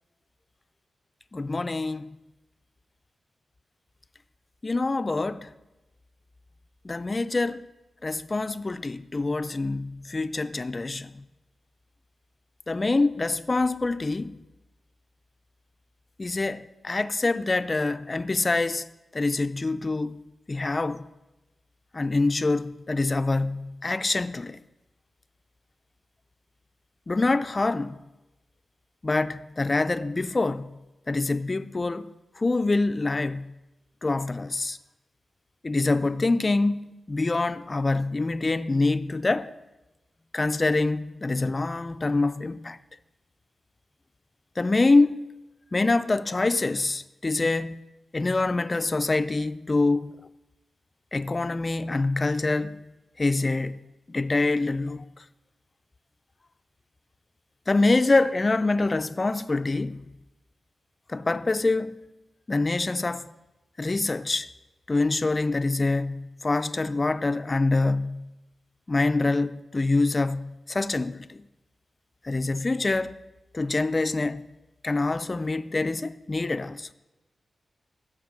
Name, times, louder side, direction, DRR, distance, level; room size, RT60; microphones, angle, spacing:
voice 1, 1.3-2.2 4.6-5.5 6.8-7.7 8.0-11.2 12.7-14.4 16.2-18.9 19.1-20.2 20.5-21.1 21.9-24.6 27.1-28.0 29.0-30.8 31.1-33.5 34.0-34.8 35.6-39.5 40.3-42.8 44.6-45.2 45.7-47.8 48.1-50.1 51.1-52.8 53.2-55.2 57.7-60.1 61.1-62.0 62.5-63.3 63.8-64.5 64.9-68.3 68.9-71.5 72.2-73.2 73.5-74.4 74.8-76.9, left 3 dB, 30° left, 0.5 m, -25 dB
15.5 x 6.5 x 7.4 m
wide cardioid pair, 120°, 0 cm